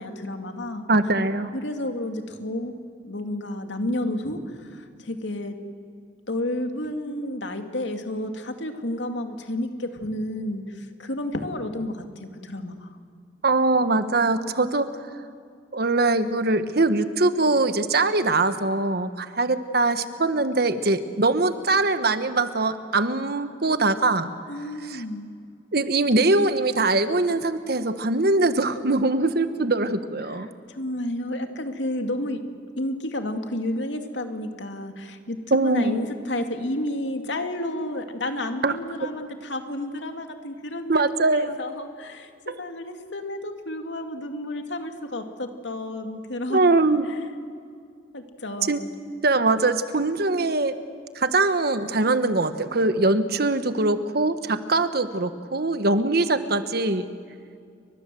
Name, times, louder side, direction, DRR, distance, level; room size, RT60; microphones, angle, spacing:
voice 1, 0.0-0.9 1.5-2.7 3.0-5.6 6.3-13.0 24.5-25.3 30.2-32.4 32.8-42.3 42.6-46.7 47.0-47.3 48.1-48.9, left 1 dB, 75° left, 5 dB, 2.5 m, -31 dB
voice 2, 0.9-1.5 13.4-14.9 15.7-24.3 24.8-25.0 25.7-30.5 35.5-36.0 38.6-38.8 40.9-41.6 42.5-42.6 46.5-47.1 48.7-48.8 49.2-50.7 51.1-57.1, right 2 dB, 60° right, 10 dB, 1.4 m, -22 dB
29.5 x 24.5 x 7.8 m, 2.3 s
head